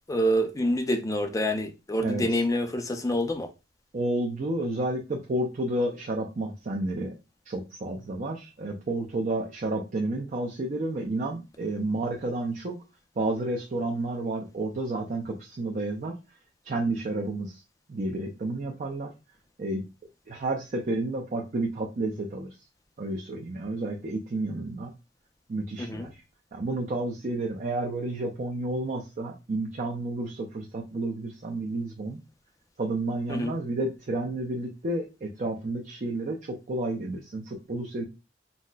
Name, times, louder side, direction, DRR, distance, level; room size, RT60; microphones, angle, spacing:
voice 1, 0.1-3.5 25.8-26.1 33.3-33.5, equal, 20° left, 0.4 m, -27 dB
voice 2, 2.0-2.4 3.9-7.1 7.5-12.8 13.2-16.1 16.6-17.6 17.9-19.1 19.6-19.8 20.3-22.5 23.0-24.9 25.5-26.2 26.5-32.2 32.8-38.0, right 2 dB, 45° right, 0.5 m, -31 dB
4.0 x 2.0 x 2.2 m
head